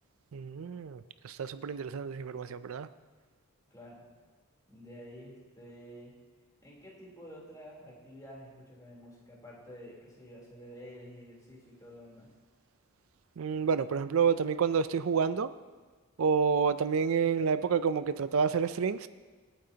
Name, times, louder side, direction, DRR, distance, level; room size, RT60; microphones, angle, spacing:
voice 1, 0.3-2.9 13.4-15.5 16.2-19.1, right 6 dB, 70° right, 12 dB, 0.4 m, -29 dB
voice 2, 3.7-4.0 4.7-6.2 6.6-12.3, equal, 15° left, -4 dB, 3.4 m, -50 dB
26.5 x 9.0 x 2.9 m, 1.4 s
head